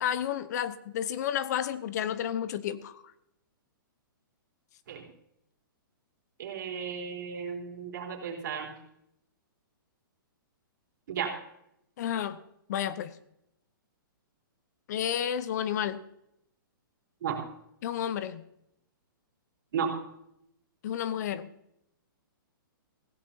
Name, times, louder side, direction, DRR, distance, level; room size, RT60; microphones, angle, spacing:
voice 1, 0.0-3.0 12.0-12.4 12.7-13.1 14.9-16.0 17.8-18.4 20.8-21.5, left 10 dB, 50° left, 14 dB, 0.8 m, -31 dB
voice 2, 6.4-8.7 11.1-11.3 17.2-17.4 19.7-19.9, right 7 dB, 60° right, 1 dB, 3.6 m, -34 dB
16.5 x 15.5 x 2.8 m, 0.78 s
hypercardioid pair, 150°, 12 cm